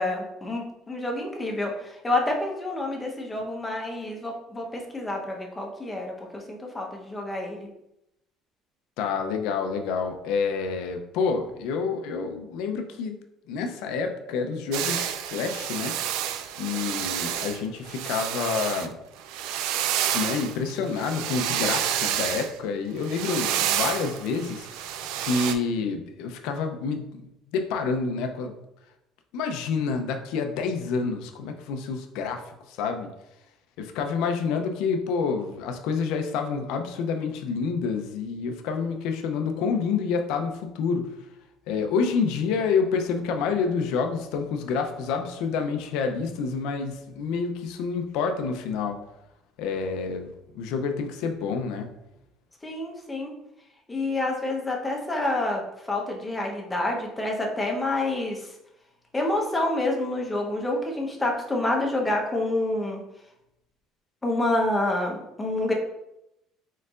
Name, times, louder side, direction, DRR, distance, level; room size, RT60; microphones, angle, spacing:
voice 1, 0.0-7.7 52.6-53.3 53.9-55.6 55.9-58.5 59.1-63.0 64.2-65.7, left 2 dB, 15° left, 0 dB, 0.9 m, -28 dB
voice 2, 9.0-13.2 13.5-16.0 16.6-18.9 20.1-24.7 25.2-27.3 27.5-28.5 29.3-32.4 32.7-33.1 33.8-41.1 41.7-49.0 49.6-50.3 50.5-51.9, left 5 dB, 80° left, 5 dB, 0.5 m, -28 dB
sound 1, 14.7-18.9 19.2-22.5 23.0-25.5, right 10 dB, 80° right, 0.3 m, -29 dB
4.4 x 3.9 x 2.5 m, 0.86 s
cardioid pair, 115°, 0 cm